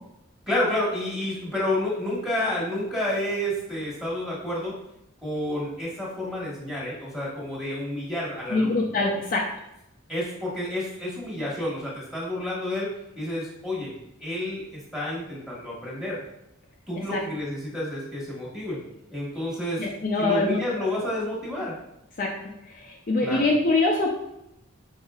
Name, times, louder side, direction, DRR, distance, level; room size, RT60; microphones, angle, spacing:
voice 1, 0.5-4.7 5.2-8.9 10.1-13.9 14.2-16.2 16.9-18.8 19.1-19.8 20.2-21.8 23.2-23.4, left 1 dB, 5° right, -7 dB, 1.3 m, -30 dB
voice 2, 8.5-9.5 17.1-17.2 19.8-20.9 22.2-24.1, left 2 dB, 40° left, -1 dB, 0.4 m, -24 dB
5.4 x 3.9 x 2.4 m, 0.85 s
head